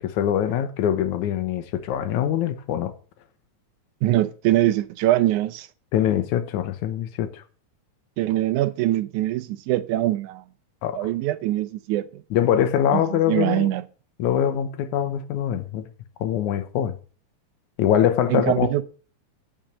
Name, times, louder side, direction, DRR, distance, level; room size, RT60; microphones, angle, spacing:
voice 1, 0.0-2.9 5.9-7.4 10.8-11.0 12.3-13.7 14.2-15.9 16.2-17.0 17.8-18.8, left 10 dB, 85° left, 2.4 m, -23 dB
voice 2, 4.0-5.7 8.2-10.4 10.9-12.2 12.9-13.8 18.3-18.8, right 15 dB, 90° right, 2.2 m, -23 dB
8.9 x 6.3 x 7.3 m
omnidirectional pair, 3.4 m